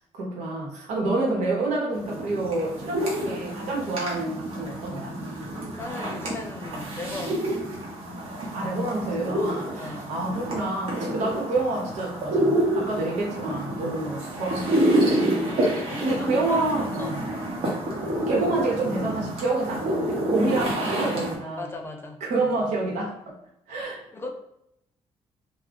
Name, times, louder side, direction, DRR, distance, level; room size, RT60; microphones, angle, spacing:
voice 1, 0.1-5.1 8.5-15.2 16.0-17.2 18.3-21.7 22.3-23.3 23.7-24.0, right 2 dB, 85° right, -2 dB, 0.9 m, -28 dB
sound 1, 1.9-21.4, right 1 dB, 60° right, 0.9 m, -28 dB
voice 2, 5.8-7.6 9.8-10.1 15.5-17.2 18.4-18.5 21.6-22.5 24.1-24.3, left 2 dB, 20° left, 3 dB, 0.4 m, -37 dB
2.3 x 2.1 x 3.6 m, 0.78 s
cardioid pair, 140°, 12 cm